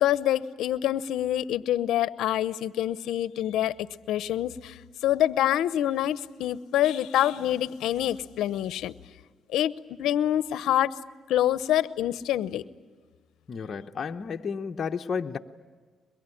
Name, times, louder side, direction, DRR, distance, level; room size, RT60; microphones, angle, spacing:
voice 1, 0.0-8.9 9.5-11.0 11.3-12.6, left 12 dB, 85° left, 0.8 m, -26 dB
voice 2, 13.5-15.4, left 6 dB, 45° left, 0.9 m, -32 dB
23.0 x 22.5 x 9.9 m
cardioid pair, 90°, 0 cm